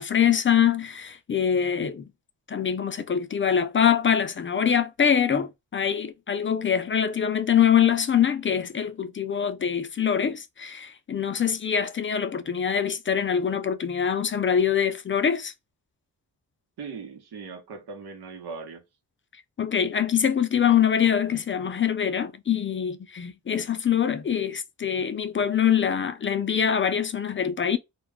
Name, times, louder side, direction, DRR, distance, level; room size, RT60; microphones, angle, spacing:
voice 1, 0.0-2.1 2.5-15.5 19.6-27.8, left 8 dB, 35° left, 0.4 m, -24 dB
voice 2, 16.8-18.8, right 5 dB, 85° right, 0.9 m, -39 dB
2.3 x 2.1 x 3.4 m
cardioid pair, 70°, 38 cm